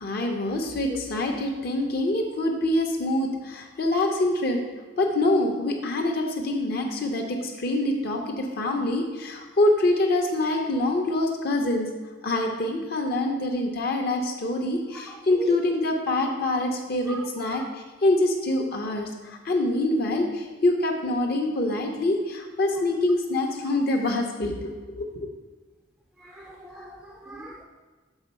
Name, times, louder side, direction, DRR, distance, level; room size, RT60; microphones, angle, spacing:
voice 1, 0.0-4.6 5.0-11.9 12.2-25.3, left 1 dB, 50° left, 2 dB, 0.6 m, -25 dB
voice 2, 17.1-17.6 26.2-27.6, equal, 5° right, 0 dB, 0.4 m, -40 dB
7.1 x 3.7 x 5.3 m, 1.3 s
head